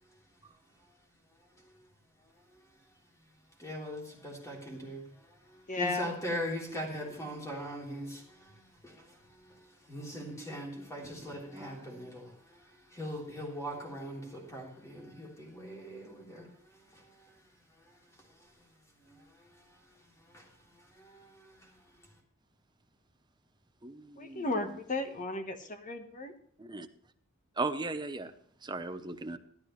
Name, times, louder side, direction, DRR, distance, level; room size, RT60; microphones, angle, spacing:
voice 1, 3.6-17.3 17.8-18.6 19.0-22.1, equal, 15° left, -2 dB, 3.5 m, -42 dB
voice 2, 5.7-6.1 24.2-26.3, left 2 dB, 40° left, 7 dB, 1.3 m, -34 dB
voice 3, 23.8-24.4 26.6-26.9 27.6-28.3 28.6-29.4, right 3 dB, 20° right, 8 dB, 0.8 m, -37 dB
13.0 x 12.5 x 3.2 m, 0.64 s
head